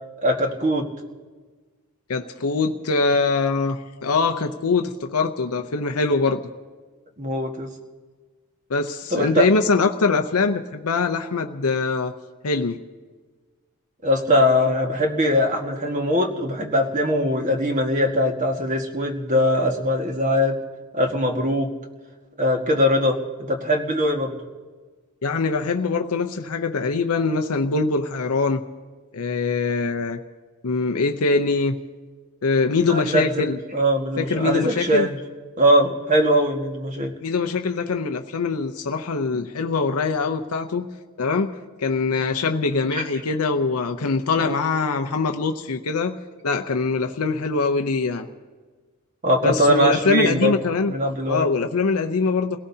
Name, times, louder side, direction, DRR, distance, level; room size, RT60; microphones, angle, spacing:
voice 1, 0.2-0.9 7.2-7.7 9.1-9.4 14.0-20.6 20.9-21.7 22.4-23.2 23.5-24.4 32.9-33.4 33.7-35.1 35.6-37.1 42.9-43.0 44.4-44.6 49.2-50.5 50.9-51.5, equal, 35° right, 2 dB, 1.7 m, -21 dB
voice 2, 2.1-6.4 8.7-12.2 12.4-12.8 25.2-28.6 29.1-30.2 30.6-31.8 32.4-33.6 34.2-35.1 37.2-40.9 41.2-41.5 41.8-46.2 46.4-48.3 49.4-50.9 51.3-52.6, left 4 dB, 85° left, 6 dB, 0.7 m, -23 dB
29.5 x 17.5 x 2.8 m, 1.4 s
head